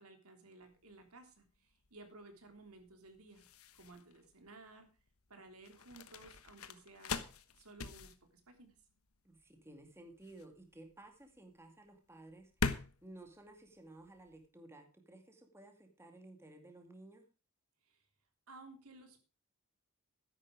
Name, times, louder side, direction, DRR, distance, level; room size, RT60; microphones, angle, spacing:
voice 1, 0.0-3.4 3.8-4.9 5.3-7.2 7.6-8.1 8.5-8.7 17.8-18.0 18.5-19.2, right 2 dB, 80° right, 6 dB, 3.3 m, -56 dB
sound 1, 0.6-14.5, left 4 dB, 75° left, 1.2 m, -44 dB
voice 2, 9.2-17.3, right 2 dB, 10° right, 4 dB, 2.3 m, -56 dB
13.0 x 11.0 x 4.9 m, 0.32 s
head